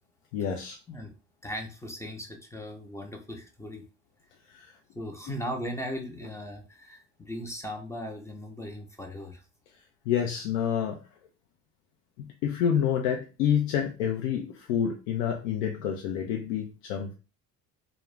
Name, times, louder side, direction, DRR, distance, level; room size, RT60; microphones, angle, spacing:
voice 1, 0.3-0.8 4.5-4.8 10.1-11.0 12.2-17.1, left 8 dB, 85° left, 2 dB, 0.5 m, -28 dB
voice 2, 1.4-3.8 4.9-9.4, equal, 10° left, 2 dB, 0.5 m, -38 dB
2.3 x 2.0 x 3.1 m, 0.32 s
supercardioid pair, 90°, 36 cm